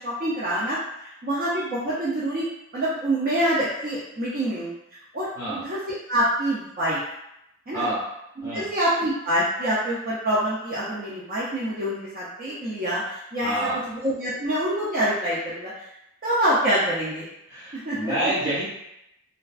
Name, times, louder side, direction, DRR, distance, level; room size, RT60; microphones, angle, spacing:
voice 1, 0.0-2.5 2.7-4.7 5.1-7.0 7.7-7.9 8.5-15.9 16.2-17.2 17.7-18.1, right 1 dB, 40° right, -8 dB, 0.4 m, -26 dB
voice 2, 13.4-13.8 17.5-18.6, right 1 dB, 15° right, -12 dB, 1.2 m, -27 dB
2.4 x 2.2 x 2.3 m, 0.84 s
head